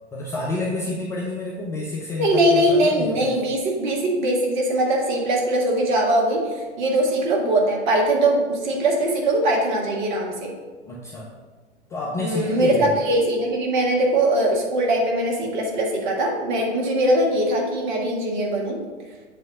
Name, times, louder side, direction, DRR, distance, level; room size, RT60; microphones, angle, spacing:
voice 1, 0.1-3.3 10.9-11.3 11.9-13.0, left 2 dB, 10° left, -3 dB, 0.4 m, -29 dB
voice 2, 2.2-10.5 12.2-18.8, right 1 dB, 40° right, 0 dB, 1.7 m, -21 dB
7.6 x 3.0 x 6.1 m, 1.4 s
figure-of-eight pair, 105°, 35 cm